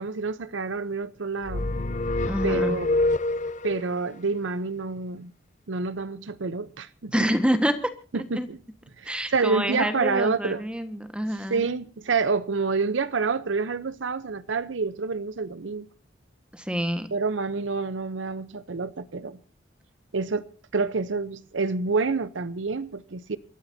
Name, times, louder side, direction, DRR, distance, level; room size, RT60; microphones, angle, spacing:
voice 1, 0.0-1.7 2.4-3.0 3.6-5.3 5.7-7.1 8.1-8.6 9.0-10.6 11.5-15.9 17.1-19.4 20.1-20.5 20.7-23.4, right 4 dB, 85° right, 0.7 m, -28 dB
sound 1, 1.5-3.9, left 2 dB, 40° left, 0.7 m, -26 dB
voice 2, 2.2-2.8 7.1-7.9 8.3-8.5 9.0-11.6 16.5-17.1, equal, 5° right, 1.4 m, -27 dB
28.0 x 13.5 x 2.7 m
head